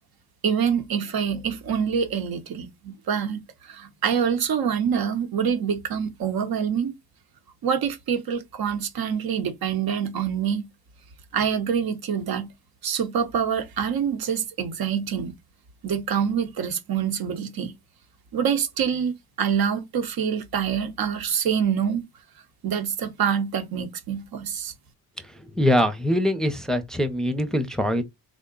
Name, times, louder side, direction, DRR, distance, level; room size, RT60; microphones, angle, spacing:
voice 1, 0.4-3.4 3.7-6.9 7.6-10.6 11.3-12.5 12.8-15.3 15.8-17.7 18.3-19.1 19.4-22.0 22.6-24.7, right 7 dB, 70° right, 0.9 m, -26 dB
voice 2, 25.2-28.0, equal, ahead, 0.6 m, -23 dB
3.7 x 2.2 x 3.7 m
cardioid pair, 75°, 37 cm